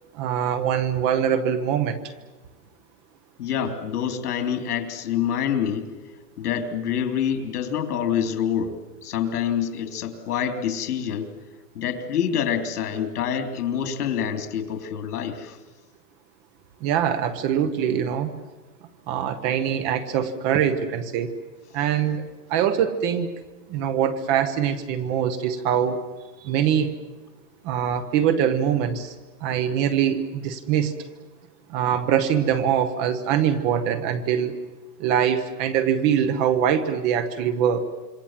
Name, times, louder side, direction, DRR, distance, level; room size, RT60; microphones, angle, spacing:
voice 1, 0.1-2.0 16.8-18.3 19.1-21.3 21.7-23.3 23.7-26.0 26.4-27.0 27.6-29.1 29.4-30.9 31.7-34.6 35.0-37.9, right 8 dB, 25° right, 10 dB, 1.0 m, -23 dB
voice 2, 3.4-5.9 6.4-8.8 9.0-11.3 11.8-15.6, left 8 dB, 75° left, 8 dB, 3.5 m, -26 dB
26.5 x 24.0 x 7.5 m, 1.2 s
supercardioid pair, 170°, 46 cm